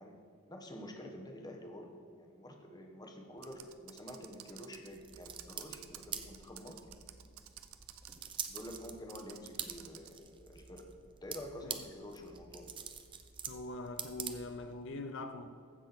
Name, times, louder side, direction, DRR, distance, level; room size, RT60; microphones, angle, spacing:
voice 1, 0.0-6.8 8.5-10.9 11.2-12.7, left 1 dB, 20° left, 3 dB, 1.0 m, -48 dB
Computer keyboard, 3.4-10.2, right 12 dB, 75° right, 0.5 m, -53 dB
sound 1, 4.9-14.8, right 7 dB, 20° right, 0.5 m, -46 dB
voice 2, 13.5-15.5, left 2 dB, 60° left, 7 dB, 0.5 m, -43 dB
15.0 x 6.1 x 4.1 m, 2.2 s
head